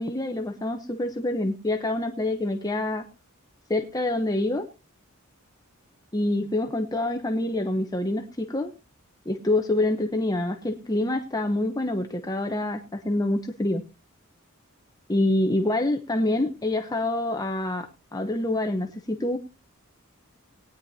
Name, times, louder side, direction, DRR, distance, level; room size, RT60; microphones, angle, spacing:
voice 1, 0.0-3.1 3.7-4.7 6.1-8.7 9.3-13.8 15.1-19.4, left 1 dB, 20° left, 5 dB, 0.8 m, -26 dB
19.5 x 9.8 x 2.7 m, 0.28 s
head